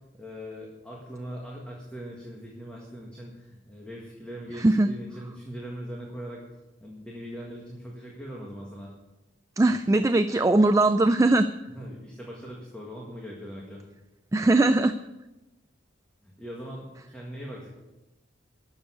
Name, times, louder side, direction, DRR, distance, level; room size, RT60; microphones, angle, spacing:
voice 1, 0.0-6.4 6.8-8.9 11.7-13.8 16.2-17.7, equal, 5° left, -3 dB, 1.7 m, -40 dB
voice 2, 4.6-4.9 9.6-11.5 14.3-14.9, right 2 dB, 15° right, 10 dB, 0.3 m, -20 dB
12.0 x 7.1 x 8.2 m, 1.0 s
head